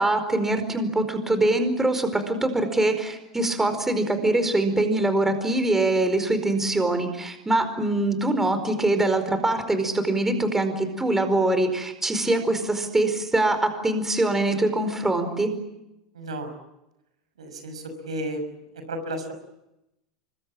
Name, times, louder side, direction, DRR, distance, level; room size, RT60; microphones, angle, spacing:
voice 1, 0.0-15.5, right 2 dB, 10° right, 8 dB, 4.7 m, -23 dB
voice 2, 16.1-16.5 17.4-18.5 18.7-19.3, right 1 dB, 85° right, 7 dB, 5.9 m, -33 dB
24.5 x 23.0 x 8.7 m, 0.90 s
hypercardioid pair, 90°, 3 cm